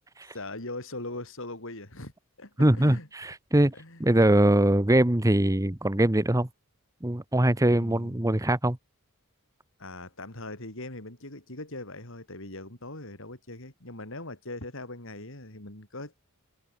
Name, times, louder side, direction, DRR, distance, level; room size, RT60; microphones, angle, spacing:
voice 1, 0.3-2.1 2.4-3.1 3.5-4.0 7.7-8.2 9.8-16.2, left 2 dB, 60° left, 6.1 m, -40 dB
voice 2, 2.6-3.7 4.0-6.5 7.0-8.8, right 1 dB, 15° right, 1.1 m, -22 dB
head